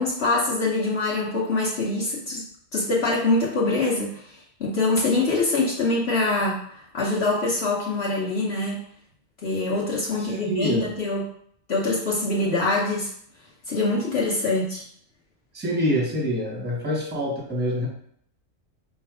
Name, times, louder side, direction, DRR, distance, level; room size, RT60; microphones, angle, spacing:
voice 1, 0.0-2.4 2.7-4.2 4.6-6.6 6.9-8.8 9.4-11.3 11.7-13.1 13.7-14.8, left 2 dB, 55° left, -5 dB, 1.1 m, -24 dB
voice 2, 10.1-10.9 15.5-17.9, equal, 10° right, -1 dB, 0.9 m, -26 dB
4.5 x 2.4 x 4.8 m, 0.65 s
omnidirectional pair, 1.3 m